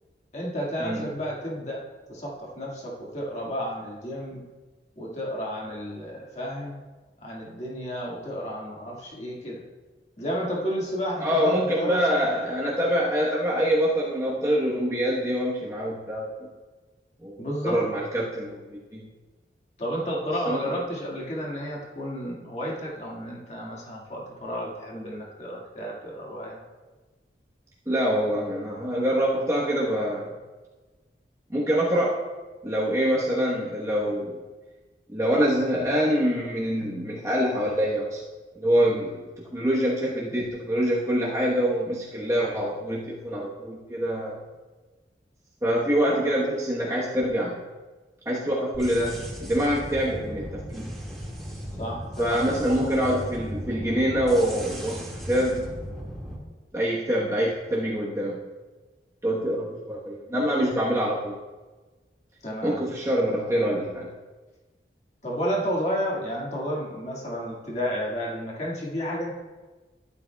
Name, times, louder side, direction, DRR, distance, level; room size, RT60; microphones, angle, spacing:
voice 1, 0.3-4.4 5.0-6.8 7.2-9.6 10.2-12.3 17.4-17.8 19.8-26.6 51.8-52.5 62.4-62.8 65.2-69.4, equal, 35° left, -4 dB, 1.9 m, -31 dB
voice 2, 11.2-16.5 17.2-19.1 20.4-20.7 27.9-30.4 31.5-32.3 32.6-34.4 35.1-38.2 38.5-39.2 39.5-44.4 45.6-47.6 48.2-50.9 52.2-55.7 56.7-58.4 59.2-61.4 62.6-64.1, equal, 15° right, -6 dB, 1.1 m, -25 dB
sound 1, 48.7-56.4, equal, ahead, 1.9 m, -37 dB
12.0 x 12.0 x 2.3 m, 1.3 s
head